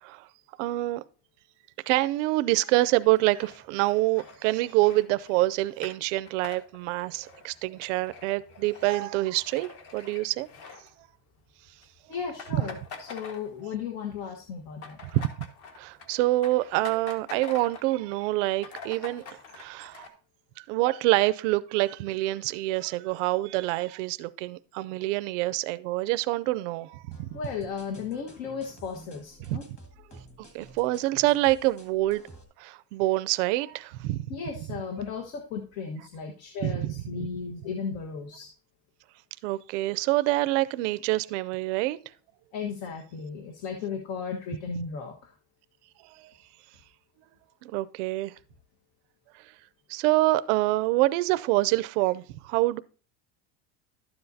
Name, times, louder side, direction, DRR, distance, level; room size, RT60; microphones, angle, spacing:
voice 1, 0.6-1.0 1.9-10.5 15.1-15.5 15.8-20.1 20.7-27.4 29.5-29.6 30.5-32.2 32.6-34.2 36.6-36.9 39.4-42.0 46.1-46.3 47.6-48.3 49.9-52.8, right 18 dB, 85° right, 0.5 m, -26 dB
sound 1, 3.0-11.4 11.7-11.9 12.1-13.9 14.2-18.0 18.3-18.4 18.6-20.1, left 5 dB, 45° left, 1.5 m, -46 dB
voice 2, 12.1-15.0 27.3-29.6 34.3-38.5 42.5-45.3, left 6 dB, 70° left, 1.5 m, -35 dB
sound 2, 27.1-32.4, right 1 dB, 20° left, 1.6 m, -50 dB
12.0 x 7.8 x 2.7 m
cardioid pair, 170°, 36 cm